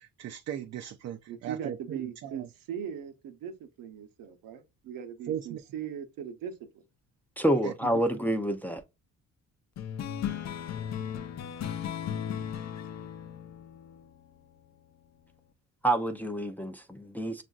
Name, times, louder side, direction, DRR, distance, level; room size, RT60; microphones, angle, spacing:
voice 1, 0.0-2.5 5.3-5.6 7.6-7.7, right 10 dB, 55° right, 0.4 m, -38 dB
voice 2, 1.3-6.6, right 8 dB, 80° right, 0.8 m, -39 dB
voice 3, 7.4-8.8 15.8-17.4, right 1 dB, 5° left, 0.5 m, -28 dB
sound 1, 9.8-14.7, left 9 dB, 55° left, 0.5 m, -36 dB
6.0 x 2.5 x 2.3 m
cardioid pair, 90°, 33 cm